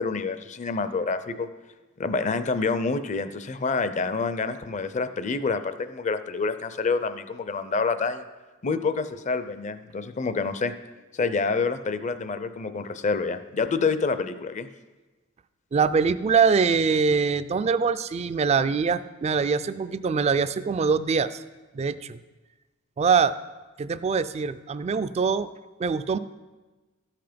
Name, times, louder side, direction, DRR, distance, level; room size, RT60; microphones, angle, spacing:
voice 1, 0.0-1.5 2.0-8.2 8.6-10.7 11.1-14.7, left 4 dB, 35° left, 11 dB, 0.5 m, -27 dB
voice 2, 15.7-21.4 21.7-22.2 23.0-23.3 23.8-25.5 25.8-26.2, right 5 dB, 30° right, 13 dB, 0.3 m, -23 dB
13.0 x 5.8 x 5.1 m, 1.2 s
head